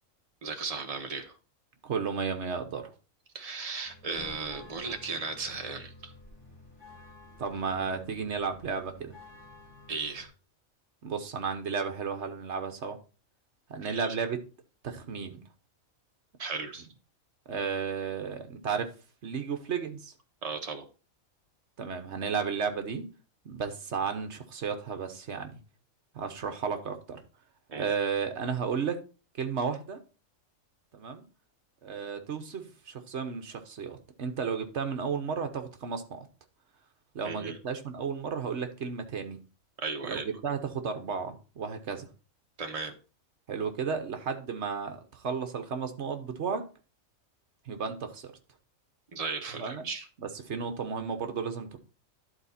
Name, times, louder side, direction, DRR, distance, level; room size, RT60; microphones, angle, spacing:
voice 1, 0.4-1.3 3.3-6.1 9.9-10.3 13.8-14.1 16.4-16.9 20.4-20.9 27.7-27.9 37.2-37.6 39.8-40.4 42.6-42.9 49.1-50.1, right 4 dB, 30° right, 1.0 m, -36 dB
voice 2, 1.8-2.9 7.4-9.2 11.0-13.0 13.7-14.4 14.8-15.4 17.5-18.9 19.2-20.1 21.8-23.1 23.4-25.6 26.1-27.2 27.8-29.0 29.4-30.0 30.9-31.2 31.8-36.3 37.1-39.4 40.0-42.1 43.5-46.7 47.7-48.3 49.6-49.9 50.2-51.8, right 6 dB, 60° right, 1.2 m, -33 dB
sound 1, 3.8-10.3, left 2 dB, 20° left, 2.0 m, -51 dB
11.0 x 4.1 x 4.2 m
omnidirectional pair, 1.4 m